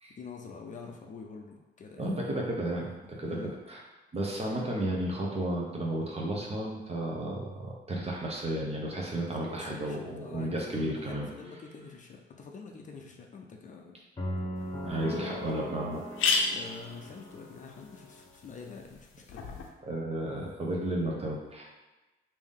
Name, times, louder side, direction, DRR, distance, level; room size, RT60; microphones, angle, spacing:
voice 1, 0.1-2.3 3.2-3.5 9.3-14.0 14.5-14.8 16.5-19.5, left 4 dB, 40° left, 1 dB, 0.5 m, -46 dB
voice 2, 2.0-3.4 3.7-3.8 4.1-11.3 14.8-16.0 19.9-21.7, right 1 dB, 30° right, -2 dB, 0.8 m, -33 dB
sound 1, 14.2-18.3, equal, 25° left, 1.0 m, -39 dB
sound 2, 14.6-14.7 15.2-15.3 15.5-15.6 15.9-19.7, left 4 dB, 85° left, 0.6 m, -34 dB
3.4 x 2.7 x 3.6 m, 1.1 s
cardioid pair, 90°, 20 cm